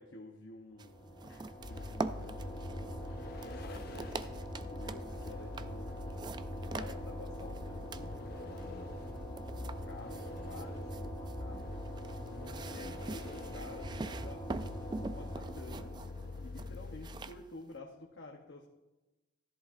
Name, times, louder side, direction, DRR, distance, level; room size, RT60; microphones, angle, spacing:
voice 1, 0.0-2.9 3.4-4.1 4.6-8.9 9.5-11.7 12.7-15.9 16.4-18.7, left 2 dB, 75° left, 0 dB, 0.9 m, -51 dB
sound 1, 0.8-16.6, right 1 dB, 20° left, 1.2 m, -44 dB
sound 2, 0.8-17.8, right 3 dB, 25° right, 0.3 m, -45 dB
Vehicle, 1.6-17.5, left 3 dB, 55° left, 0.5 m, -46 dB
13.5 x 11.0 x 2.5 m, 1.1 s
head